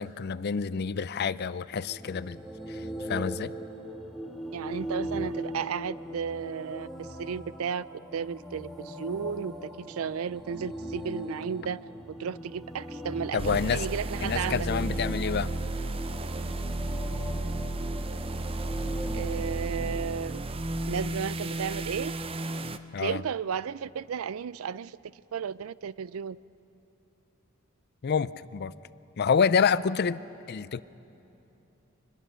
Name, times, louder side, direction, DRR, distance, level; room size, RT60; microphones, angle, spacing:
voice 1, 0.0-2.4 2.7-2.8 3.1-3.5 13.3-13.9 14.2-15.5 22.9-23.2 28.0-28.7 29.2-30.8, left 6 dB, 50° left, 17 dB, 0.4 m, -28 dB
sound 1, 1.6-20.4, right 1 dB, ahead, 1.3 m, -40 dB
voice 2, 4.5-11.8 12.2-14.7 19.1-20.4 20.9-22.1 23.0-25.0 25.3-26.4, right 7 dB, 85° right, 19 dB, 0.4 m, -34 dB
sound 2, 13.4-22.8, right 2 dB, 25° right, 0.6 m, -33 dB
24.5 x 21.0 x 6.4 m, 2.9 s
head